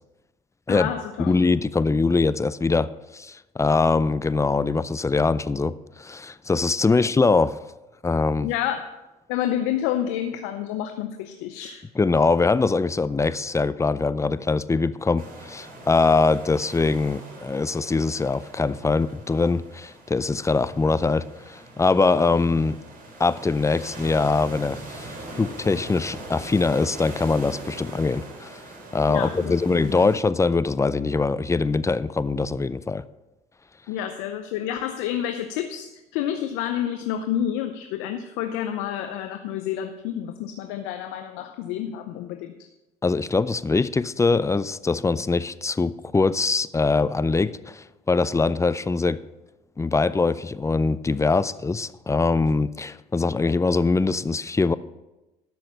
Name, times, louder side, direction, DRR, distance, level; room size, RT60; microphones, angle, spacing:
voice 1, 0.7-1.3 6.9-7.0 8.4-8.9 9.3-11.8 29.1-30.1 33.9-42.7, left 10 dB, 75° left, 0.7 m, -29 dB
voice 2, 1.2-7.6 8.0-8.5 12.0-22.8 23.2-28.6 28.9-33.0 43.0-49.2 49.8-54.7, left 3 dB, 15° left, 0.5 m, -23 dB
sound 1, 15.2-30.2, right 1 dB, 45° right, 3.7 m, -41 dB
12.5 x 6.4 x 5.6 m
hypercardioid pair, 65°, 20 cm